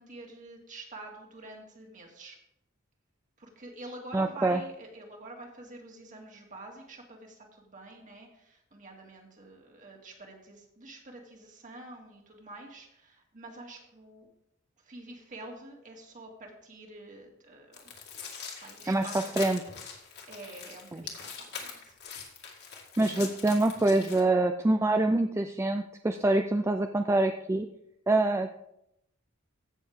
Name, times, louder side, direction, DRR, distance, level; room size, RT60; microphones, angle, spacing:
voice 1, 0.0-2.4 3.4-14.3 14.8-17.9 18.6-19.6 20.0-21.9 23.0-23.3, right 2 dB, 35° right, 1 dB, 2.0 m, -47 dB
voice 2, 4.1-4.6 18.9-19.1 19.4-19.6 20.9-21.0 23.0-27.7 28.1-28.6, right 2 dB, 15° right, 7 dB, 0.4 m, -25 dB
sound 1, 17.7-24.2, left 6 dB, 50° left, 2.1 m, -43 dB
15.5 x 6.5 x 3.6 m, 0.79 s
head